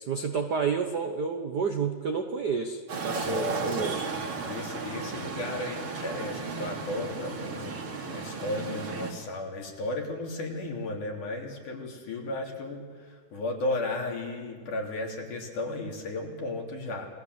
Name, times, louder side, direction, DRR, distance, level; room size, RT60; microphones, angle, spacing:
voice 1, 0.1-4.0, right 5 dB, 90° right, 6 dB, 0.9 m, -30 dB
sound 1, 2.9-9.1, right 4 dB, 45° right, 3.2 m, -34 dB
voice 2, 3.2-3.9 4.4-17.1, left 2 dB, 75° left, 0 dB, 4.8 m, -34 dB
29.5 x 20.0 x 8.1 m, 1.5 s
omnidirectional pair, 3.6 m